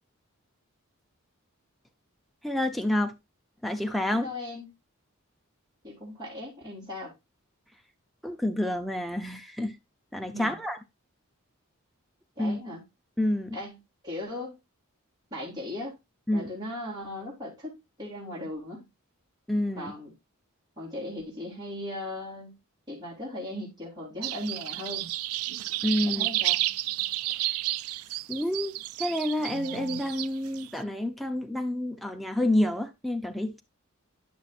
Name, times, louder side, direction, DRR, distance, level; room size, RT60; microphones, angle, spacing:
voice 1, 2.4-3.1 3.6-4.3 8.2-9.8 10.1-10.8 12.4-12.6 13.2-13.6 16.3-16.5 19.5-19.9 25.8-26.3 28.3-33.6, left 1 dB, ahead, 0.6 m, -28 dB
voice 2, 4.1-4.7 5.8-7.1 10.3-10.6 12.3-12.8 13.5-14.6 15.3-16.0 16.3-18.9 19.8-20.1 20.8-22.6 22.9-25.1 26.0-26.6, left 1 dB, 20° right, 3.3 m, -38 dB
sound 1, 24.2-30.7, right 16 dB, 80° right, 0.3 m, -31 dB
11.0 x 6.2 x 2.5 m
head